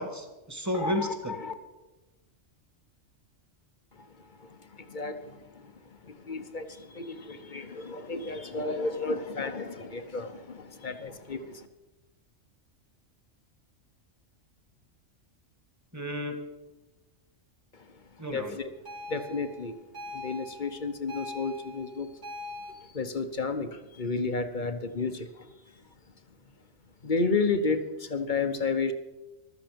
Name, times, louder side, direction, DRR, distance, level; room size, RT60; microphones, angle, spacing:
voice 1, 0.0-1.4 15.9-16.4 18.2-18.6, left 1 dB, 15° right, 5 dB, 1.9 m, -32 dB
voice 2, 0.7-1.5 4.9-5.4 6.3-6.7 6.9-11.6 18.3-18.7 19.1-19.8 20.1-22.1 22.9-23.7 24.0-25.3 27.0-27.8 28.1-28.9, left 4 dB, 40° left, 8 dB, 1.0 m, -31 dB
sound 1, 18.9-22.7, left 2 dB, 70° right, 4.5 m, -42 dB
15.0 x 13.0 x 5.2 m, 1.1 s
omnidirectional pair, 1.3 m